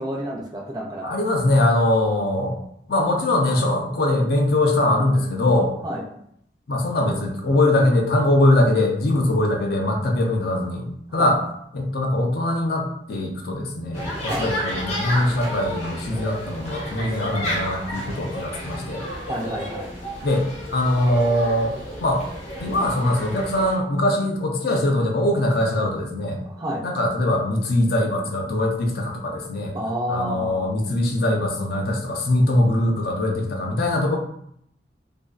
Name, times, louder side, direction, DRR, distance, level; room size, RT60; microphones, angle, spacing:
voice 1, 0.0-1.1 5.8-6.0 11.2-11.3 14.3-14.5 19.3-19.9 26.5-26.9 29.7-30.7, equal, 20° right, -1 dB, 0.3 m, -29 dB
voice 2, 1.0-2.6 2.9-5.7 6.7-11.4 11.7-19.0 20.2-22.3 22.6-26.4 26.8-29.7 30.1-34.2, left 1 dB, 60° left, 1 dB, 0.5 m, -22 dB
sound 1, 13.9-23.7, equal, 35° left, 0.8 m, -32 dB
2.5 x 2.2 x 2.3 m, 0.71 s
head